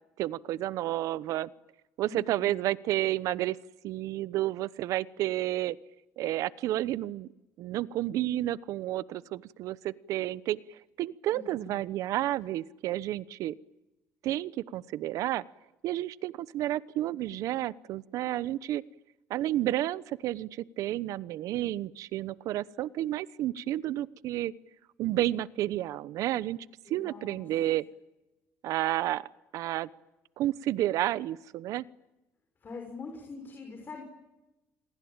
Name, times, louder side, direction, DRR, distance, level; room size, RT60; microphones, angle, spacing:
voice 1, 0.2-1.5 2.0-3.6 3.8-5.8 6.2-7.3 7.6-13.5 14.2-15.4 15.8-18.8 19.3-24.5 25.0-26.6 26.9-27.8 28.6-29.3 29.5-29.9 30.4-31.8, right 14 dB, 70° right, 18 dB, 1.0 m, -31 dB
voice 2, 2.0-2.6 11.3-11.8 26.8-27.4 32.6-34.0, left 4 dB, 35° left, 3 dB, 6.0 m, -44 dB
29.5 x 22.0 x 8.9 m, 1.0 s
cardioid pair, 105°, 6 cm